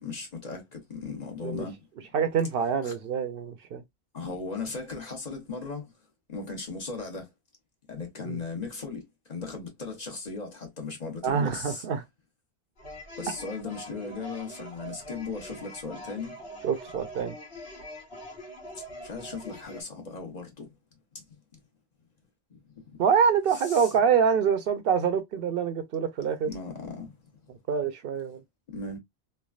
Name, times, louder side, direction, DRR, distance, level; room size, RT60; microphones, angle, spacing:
voice 1, 0.0-1.8 2.8-2.9 4.1-5.9 6.3-7.3 7.9-11.8 13.2-16.4 19.0-20.7 21.1-21.3 22.8-22.9 23.5-23.9 26.4-27.2 28.7-29.0, left 4 dB, 40° left, 1.0 m, -37 dB
voice 2, 2.1-3.8 8.3-8.4 11.2-12.0 16.6-17.3 23.0-26.5 27.7-28.4, right 7 dB, 65° right, 0.7 m, -25 dB
sound 1, 12.8-19.8, equal, 65° left, 1.2 m, -43 dB
3.2 x 2.3 x 2.3 m
omnidirectional pair, 1.1 m